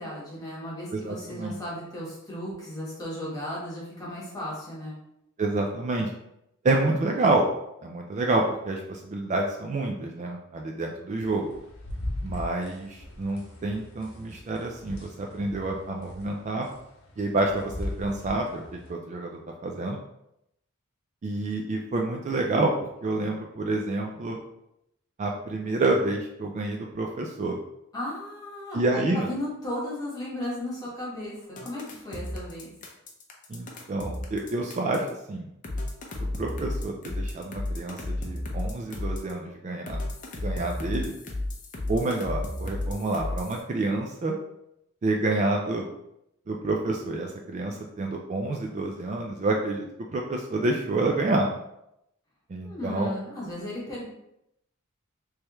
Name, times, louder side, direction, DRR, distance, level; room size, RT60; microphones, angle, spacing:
voice 1, 0.0-5.0 27.9-32.7 52.6-54.1, left 1 dB, 20° left, -6 dB, 1.3 m, -35 dB
voice 2, 0.9-1.6 5.4-6.1 6.6-7.5 7.8-11.5 12.2-16.7 17.2-20.0 21.2-22.7 23.0-24.4 25.2-27.6 28.7-29.3 33.5-35.5 36.4-40.0 40.4-41.1 41.9-44.4 45.0-45.9 46.5-49.8 50.1-51.5 52.5-53.1, right 2 dB, 35° right, 1 dB, 0.3 m, -28 dB
sound 1, 11.2-18.9, left 1 dB, 80° left, 0.9 m, -39 dB
sound 2, 31.6-35.1 35.6-39.3 39.9-43.6, left 1 dB, 40° left, 0.6 m, -33 dB
3.4 x 3.1 x 3.0 m, 0.82 s
head